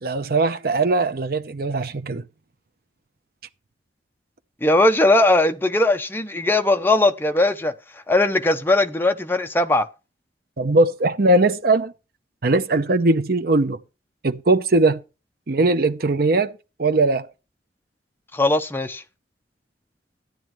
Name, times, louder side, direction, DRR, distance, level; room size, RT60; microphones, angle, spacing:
voice 1, 0.0-2.2 10.6-11.9 12.4-13.8 14.2-15.0 15.5-16.5 16.8-17.3, right 2 dB, 55° right, 0.8 m, -20 dB
voice 2, 4.6-7.7 8.1-9.9 18.3-19.0, left 2 dB, 10° left, 0.9 m, -19 dB
13.0 x 10.0 x 3.1 m
head